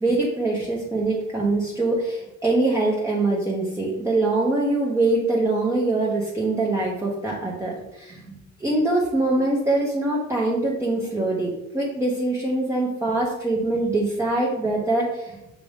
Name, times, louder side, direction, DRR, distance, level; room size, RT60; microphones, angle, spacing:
voice 1, 0.0-15.4, right 2 dB, 10° right, -4 dB, 0.8 m, -23 dB
6.0 x 2.5 x 3.5 m, 0.91 s
cardioid pair, 90°, 30 cm